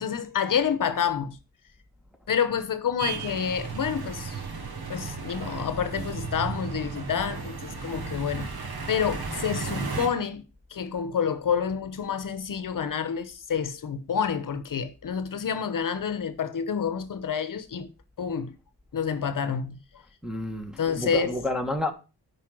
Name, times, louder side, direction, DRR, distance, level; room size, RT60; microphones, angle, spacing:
voice 1, 0.0-1.4 2.3-4.4 4.9-8.5 8.9-10.4 10.7-17.9 18.2-18.5 18.9-19.8 20.8-21.4, left 7 dB, 60° left, 0.9 m, -28 dB
sound 1, 3.0-10.1, right 4 dB, 85° right, 3.0 m, -34 dB
voice 2, 20.2-21.9, left 2 dB, ahead, 1.3 m, -30 dB
9.9 x 5.5 x 6.2 m
wide cardioid pair, 175°, 37 cm